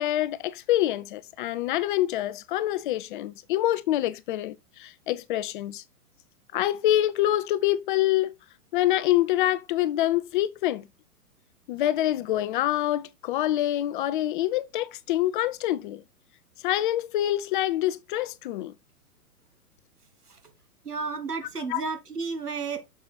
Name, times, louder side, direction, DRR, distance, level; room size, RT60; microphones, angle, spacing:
voice 1, 0.0-5.8 6.5-8.3 8.7-10.9 11.7-16.0 16.6-18.7 21.7-21.8, left 14 dB, 35° left, 0.6 m, -26 dB
voice 2, 20.8-22.9, right 4 dB, 90° right, 2.2 m, -32 dB
11.0 x 6.8 x 2.3 m
figure-of-eight pair, 115°, 45 cm